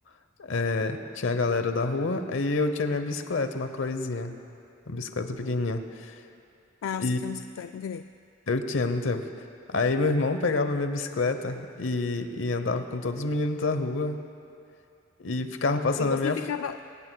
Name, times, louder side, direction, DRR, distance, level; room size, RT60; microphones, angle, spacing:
voice 1, 0.4-4.3 4.9-6.2 7.0-7.2 8.5-9.3 9.7-14.2 15.2-16.4, left 3 dB, 70° left, 8 dB, 0.9 m, -27 dB
voice 2, 6.8-8.0 16.0-16.8, left 7 dB, 90° left, 9 dB, 0.3 m, -33 dB
22.5 x 19.0 x 2.3 m, 2.5 s
head